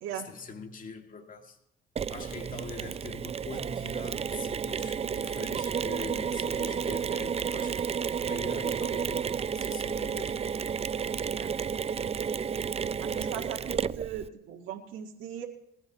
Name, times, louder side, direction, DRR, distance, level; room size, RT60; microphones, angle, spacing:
voice 1, 0.1-1.6 2.1-10.4 13.0-13.3, left 3 dB, 45° left, 3 dB, 2.3 m, -43 dB
Mechanisms, 2.0-14.3, right 7 dB, 30° right, 0.4 m, -32 dB
voice 2, 13.0-15.4, right 8 dB, 85° right, 0 dB, 1.7 m, -39 dB
21.0 x 15.5 x 3.0 m, 0.79 s
cardioid pair, 90°, 20 cm